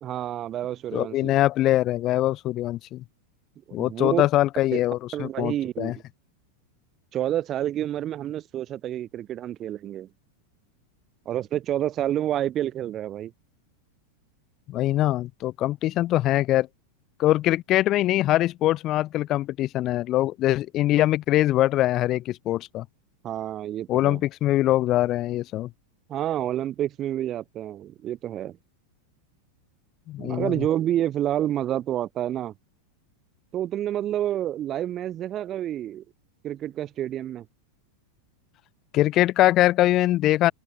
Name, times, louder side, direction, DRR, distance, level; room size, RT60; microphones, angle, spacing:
voice 1, 0.0-1.4 3.7-4.2 4.7-4.8 5.1-6.0 7.1-10.1 11.3-13.3 23.2-24.2 26.1-28.6 30.2-32.5 33.5-36.0 36.4-37.5, right 11 dB, 35° right, 1.7 m, -29 dB
voice 2, 0.9-3.0 3.7-5.9 14.7-16.7 17.2-22.8 23.9-25.7 30.1-30.5 38.9-40.5, left 15 dB, 40° left, 0.6 m, -23 dB
hypercardioid pair, 100°, 0 cm